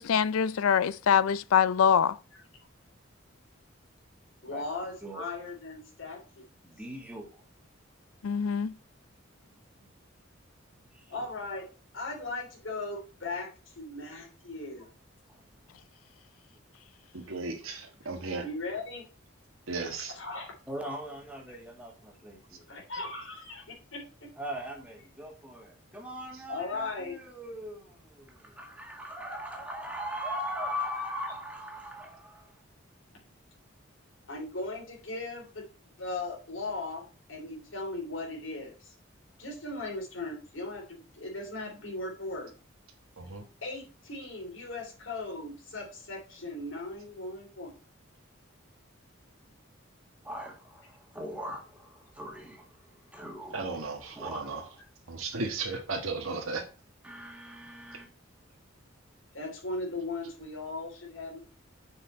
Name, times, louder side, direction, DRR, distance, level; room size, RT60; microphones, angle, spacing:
voice 1, 0.0-2.2 8.2-8.7, left 7 dB, 90° left, 0.4 m, -24 dB
voice 2, 4.4-6.5 11.1-11.7 11.9-14.9 18.4-19.1 20.0-20.5 21.5-21.6 22.7-24.3 26.5-27.2 34.3-35.7 36.0-38.9 39.4-42.5 43.6-47.7 59.3-61.4, left 2 dB, 70° left, 3.4 m, -38 dB
voice 3, 6.6-7.4 9.5-9.9 10.9-11.1 15.3-15.4 20.7-22.6 24.4-32.6 50.2-53.7 54.2-54.8 57.0-58.1, equal, 5° right, 1.7 m, -40 dB
voice 4, 17.1-18.5 19.7-20.1 43.2-43.4 53.5-54.6 55.1-56.6, right 3 dB, 85° right, 1.4 m, -35 dB
6.6 x 5.6 x 4.3 m
head